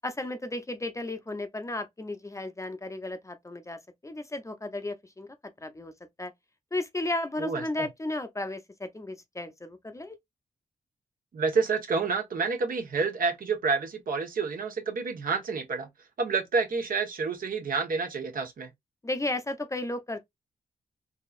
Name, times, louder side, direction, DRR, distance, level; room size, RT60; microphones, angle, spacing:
voice 1, 0.0-5.3 5.6-5.9 6.2-6.3 6.7-10.2 19.0-20.3, left 2 dB, 20° left, 0.6 m, -34 dB
voice 2, 7.4-7.9 11.3-15.9 16.2-18.7, right 4 dB, 65° right, 1.2 m, -29 dB
3.8 x 2.9 x 2.4 m
cardioid pair, 80°, 15 cm